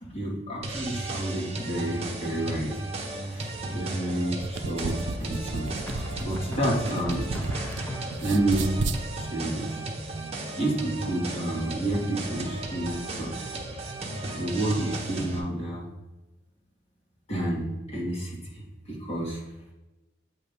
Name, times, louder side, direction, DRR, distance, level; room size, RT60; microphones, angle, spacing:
voice 1, 0.1-2.8 3.3-7.3 8.2-8.9 9.2-9.8 10.6-13.4 14.3-15.9 17.3-18.4 18.9-19.4, right 1 dB, 35° left, -4 dB, 2.1 m, -30 dB
sound 1, 0.6-15.4, right 2 dB, 35° right, 1.1 m, -35 dB
sound 2, 3.2-3.8 5.9-8.5, equal, 10° left, 0.8 m, -38 dB
sound 3, 4.3-7.8 8.1-9.0, right 3 dB, 80° right, 0.5 m, -32 dB
8.2 x 3.1 x 5.1 m, 1.0 s
head